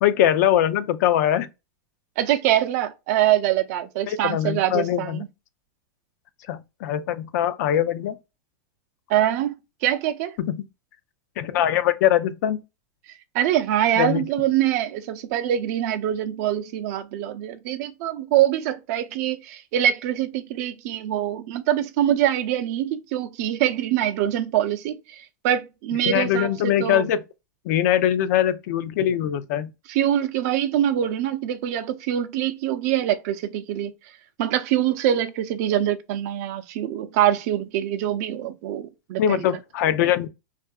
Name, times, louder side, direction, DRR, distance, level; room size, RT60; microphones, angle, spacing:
voice 1, 0.0-1.5 4.1-5.2 6.5-8.2 10.4-10.7 11.4-12.6 14.0-14.3 26.1-27.2 27.7-29.7 39.2-40.3, left 11 dB, 65° left, 0.4 m, -22 dB
voice 2, 2.2-5.3 9.1-9.5 9.8-10.3 13.3-25.2 25.4-27.1 29.9-33.9 34.4-39.5, right 11 dB, 55° right, 0.5 m, -24 dB
2.7 x 2.4 x 2.2 m
supercardioid pair, 130°, 10 cm